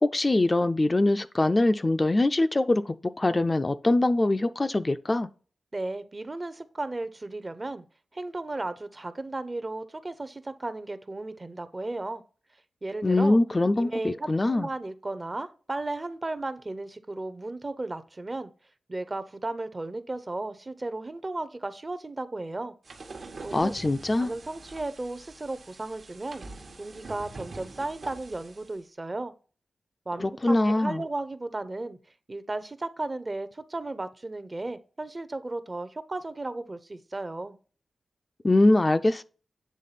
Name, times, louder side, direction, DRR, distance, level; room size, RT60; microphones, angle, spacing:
voice 1, 0.0-5.3 13.0-14.7 23.5-24.3 30.2-31.0 38.4-39.2, left 2 dB, 30° left, 0.4 m, -23 dB
voice 2, 5.7-7.8 8.1-12.2 12.8-13.4 13.8-18.5 18.9-22.7 23.4-23.8 24.2-26.4 26.8-29.3 30.1-32.0 32.3-37.6, right 2 dB, 30° right, 0.6 m, -35 dB
sound 1, 22.8-28.8, right 3 dB, 65° right, 1.1 m, -45 dB
8.3 x 3.5 x 4.0 m
wide cardioid pair, 85°, 0 cm